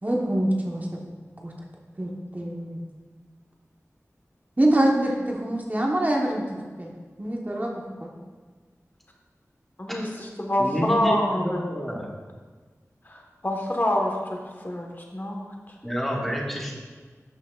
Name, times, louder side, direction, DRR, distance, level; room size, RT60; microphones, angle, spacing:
voice 1, 0.0-1.0 1.4-1.5 2.0-2.8 4.6-6.9 7.2-8.1, right 1 dB, 30° right, -1 dB, 1.1 m, -25 dB
voice 2, 9.8-11.6 13.0-15.7, left 1 dB, 35° left, 0 dB, 1.3 m, -27 dB
voice 3, 10.6-12.1 15.8-16.7, equal, 5° left, -2 dB, 1.5 m, -29 dB
11.5 x 6.0 x 2.4 m, 1.4 s
wide cardioid pair, 55°, 6 cm